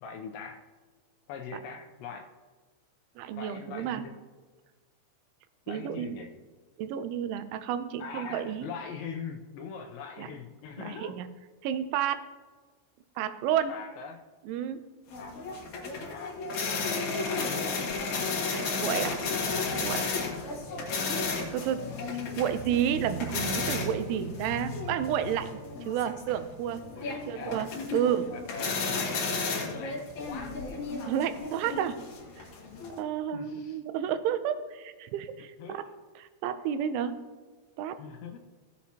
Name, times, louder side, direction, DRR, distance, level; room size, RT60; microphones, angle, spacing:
voice 1, 0.0-0.6 1.3-2.3 3.4-4.2 5.7-6.3 8.0-11.2 13.7-14.3 15.1-15.4 16.1-16.4 16.8-17.9 27.0-27.6 28.0-28.2 28.4-29.3 29.6-30.6 33.3-33.8 35.6-36.0 38.0-38.4, left 6 dB, 85° left, 3 dB, 2.7 m, -42 dB
voice 2, 3.2-4.0 5.7-6.2 6.8-8.7 10.2-10.3 10.8-11.3 11.6-12.2 13.2-13.7 14.5-14.9 18.5-19.2 19.8-20.0 21.5-21.8 22.4-26.8 27.3-28.3 31.1-32.0 32.4-32.5 33.0-35.9 36.4-37.2 37.8-38.0, right 9 dB, 85° right, 11 dB, 3.0 m, -31 dB
sound 1, 15.1-33.0, left 4 dB, 60° left, 2.0 m, -33 dB
17.0 x 7.2 x 2.9 m, 1.4 s
omnidirectional pair, 5.4 m